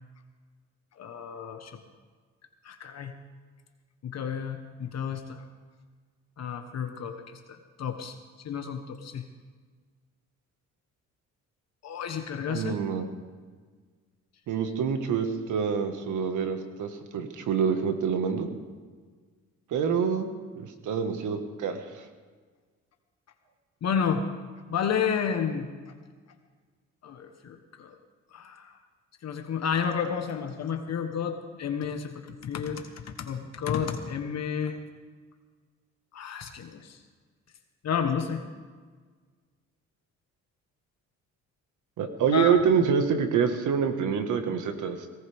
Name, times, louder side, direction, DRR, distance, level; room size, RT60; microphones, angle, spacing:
voice 1, 1.0-1.8 2.6-3.1 4.0-5.4 6.4-8.2 8.4-9.3 11.8-12.8 23.8-24.2 24.7-25.7 27.0-27.9 28.3-28.8 29.2-34.8 36.1-37.0 37.8-38.4 42.3-42.6, left 7 dB, 60° left, 5 dB, 1.3 m, -31 dB
voice 2, 12.5-13.1 14.5-18.5 19.7-20.3 20.5-22.0 42.0-45.0, right 6 dB, 80° right, 7 dB, 1.7 m, -26 dB
18.0 x 18.0 x 3.6 m, 1.5 s
cardioid pair, 90°, 30 cm